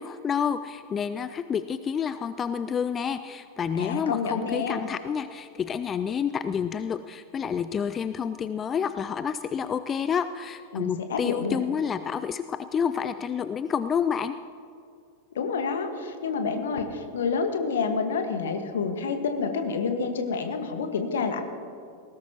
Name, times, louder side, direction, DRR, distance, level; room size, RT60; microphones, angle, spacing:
voice 1, 0.0-14.3, left 7 dB, 25° left, 12 dB, 0.4 m, -29 dB
voice 2, 3.7-4.8 10.7-11.6 15.3-21.4, left 5 dB, 60° left, 7 dB, 1.5 m, -28 dB
20.0 x 17.0 x 2.9 m, 2.4 s
figure-of-eight pair, 90°, 0 cm